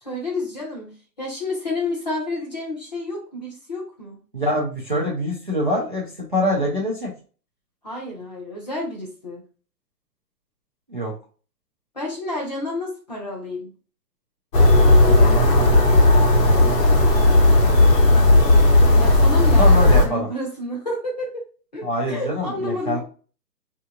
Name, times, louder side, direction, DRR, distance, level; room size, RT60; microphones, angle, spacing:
voice 1, 0.0-4.2 7.8-9.4 11.9-13.7 19.0-21.4 21.7-23.0, left 2 dB, 25° left, -3 dB, 0.7 m, -30 dB
voice 2, 4.3-7.1 10.9-11.1 15.0-15.9 16.4-17.0 19.6-20.3 21.8-23.0, equal, 35° right, -3 dB, 0.5 m, -25 dB
sound 1, 14.5-20.0, left 2 dB, 70° left, 1.2 m, -14 dB
3.5 x 2.8 x 2.3 m, 0.37 s
hypercardioid pair, 170°, 50 cm